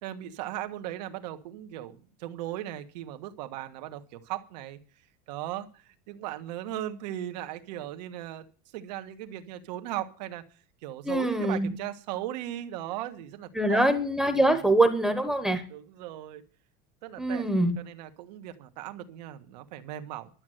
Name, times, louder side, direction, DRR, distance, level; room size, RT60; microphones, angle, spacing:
voice 1, 0.0-4.8 5.3-8.5 8.7-10.4 10.8-13.9 14.3-14.5 15.7-16.4 17.0-17.5 17.8-20.3, right 13 dB, 80° right, 8 dB, 1.6 m, -37 dB
voice 2, 11.1-11.7 13.5-15.6 17.2-17.8, right 1 dB, 5° right, 6 dB, 1.0 m, -24 dB
12.0 x 7.7 x 7.9 m, 0.38 s
cardioid pair, 170°, 21 cm